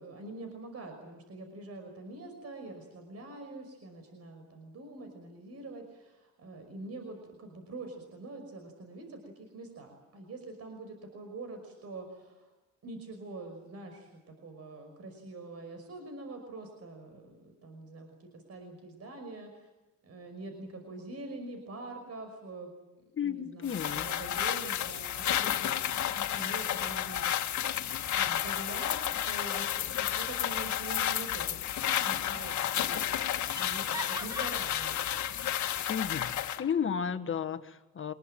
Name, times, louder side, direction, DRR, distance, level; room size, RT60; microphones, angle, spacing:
voice 1, 0.0-12.5 12.8-19.7 20.0-22.7 23.2-27.6 28.1-35.1, right 2 dB, 55° right, 6 dB, 5.6 m, -45 dB
voice 2, 23.1-24.1 35.9-36.3 36.6-38.1, left 7 dB, 40° left, 9 dB, 1.6 m, -33 dB
sound 1, 23.7-36.6, left 11 dB, 70° left, 1.7 m, -31 dB
Laughter, 31.8-32.4 32.7-32.8 33.2-35.6, equal, 15° right, 3.5 m, -44 dB
26.0 x 21.0 x 9.2 m, 1.0 s
cardioid pair, 90°, 30 cm